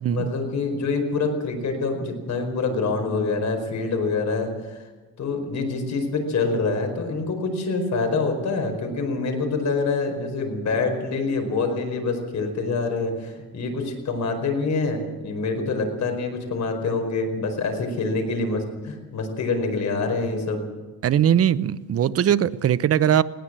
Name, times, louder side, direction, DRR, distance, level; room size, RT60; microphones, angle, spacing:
voice 1, 0.1-4.8 5.2-20.6, left 3 dB, 50° left, 4 dB, 4.9 m, -26 dB
voice 2, 21.0-23.2, right 10 dB, 40° right, 15 dB, 0.7 m, -20 dB
20.0 x 18.0 x 7.6 m, 1.3 s
cardioid pair, 150°, 36 cm